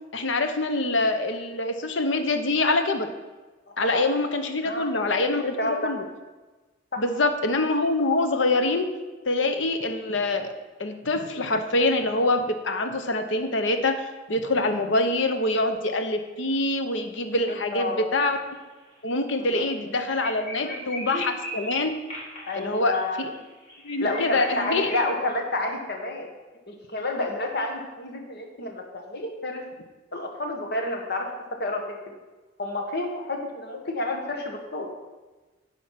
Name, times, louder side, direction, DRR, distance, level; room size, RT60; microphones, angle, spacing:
voice 1, 0.1-3.1 3.8-6.0 7.0-8.9 9.2-10.5 10.8-18.4 19.0-21.9 22.6-23.3 23.8-24.9, left 2 dB, 75° left, 7 dB, 1.0 m, -25 dB
voice 2, 5.6-5.9 6.9-7.0 17.5-18.1 19.4-19.6 20.6-20.8 21.1-21.3 22.5-23.2 24.0-26.3 26.7-29.6 30.1-31.3 31.6-31.8 32.6-34.9, left 2 dB, 55° left, 2 dB, 1.6 m, -30 dB
sound 1, 18.5-18.6 18.8-18.9 19.3-19.4 19.7-25.0, left 1 dB, 35° left, 3.0 m, -38 dB
11.0 x 4.9 x 5.9 m, 1.2 s
head